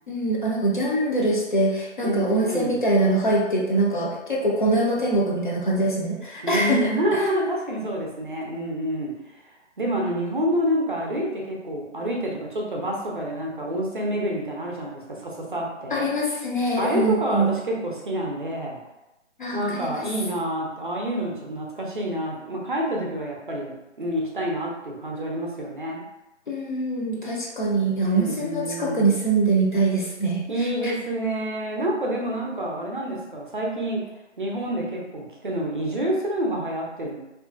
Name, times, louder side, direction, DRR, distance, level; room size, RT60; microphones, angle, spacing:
voice 1, 0.1-7.3 15.9-17.5 19.4-20.0 26.5-30.9, right 2 dB, 45° left, -3 dB, 0.5 m, -23 dB
voice 2, 2.0-2.8 6.4-9.1 9.8-16.1 16.8-18.8 19.5-23.7 24.0-26.0 28.0-29.1 30.5-34.0 34.4-37.2, equal, 45° right, -2 dB, 0.5 m, -28 dB
2.7 x 2.5 x 2.4 m, 0.97 s
hypercardioid pair, 170°, 36 cm